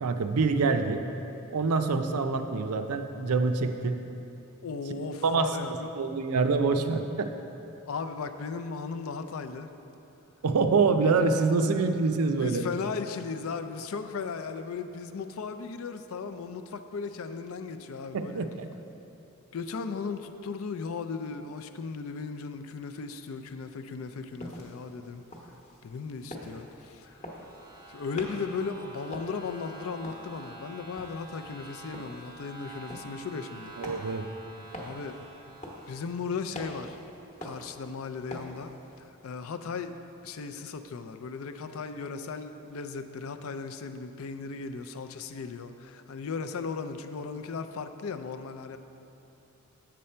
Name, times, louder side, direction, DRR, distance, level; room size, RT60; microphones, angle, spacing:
voice 1, 0.0-1.0 1.5-4.0 5.2-5.5 6.0-7.3 10.4-12.6 18.1-18.7 33.8-34.3, right 4 dB, 80° right, 7 dB, 0.5 m, -25 dB
voice 2, 4.6-6.1 7.9-9.7 12.4-18.5 19.5-25.2 25.8-27.4 27.9-33.7 34.8-35.2 35.9-37.0 37.4-39.9 40.2-48.8, left 5 dB, 65° left, 9 dB, 0.4 m, -36 dB
sound 1, 24.2-39.1, equal, 30° left, 0.9 m, -46 dB
sound 2, 26.9-36.6, right 3 dB, 15° right, 0.6 m, -48 dB
7.4 x 6.8 x 4.3 m, 2.9 s
head